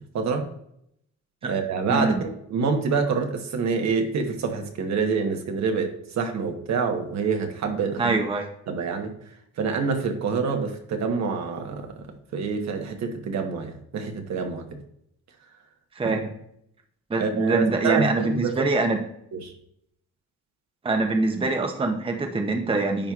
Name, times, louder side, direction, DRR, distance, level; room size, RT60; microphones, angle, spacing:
voice 1, 0.1-0.5 1.4-8.2 8.7-9.1 9.6-11.9 12.3-14.7 16.0-16.2 17.2-18.7 19.3-19.5, right 5 dB, 65° right, 4 dB, 1.1 m, -26 dB
voice 2, 1.9-2.2 8.0-8.5 16.0-16.3 17.1-19.0 20.8-23.1, right 3 dB, 20° right, 4 dB, 0.7 m, -24 dB
10.0 x 4.4 x 2.4 m, 0.73 s
cardioid pair, 90°, 30 cm